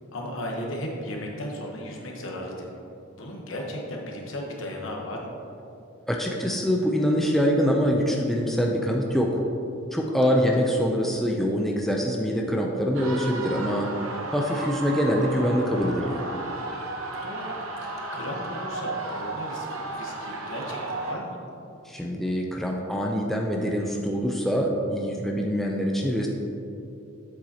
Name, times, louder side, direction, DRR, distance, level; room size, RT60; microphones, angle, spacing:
voice 1, 0.1-2.8 3.1-5.4 10.2-10.6 17.1-21.4, left 1 dB, 65° left, 0 dB, 1.1 m, -36 dB
voice 2, 6.1-9.4 9.9-13.9 14.3-16.2 21.9-26.3, equal, ahead, -1 dB, 0.4 m, -24 dB
sound 1, 12.9-21.1, right 2 dB, 85° right, 0.9 m, -34 dB
7.8 x 6.7 x 2.8 m, 2.7 s
head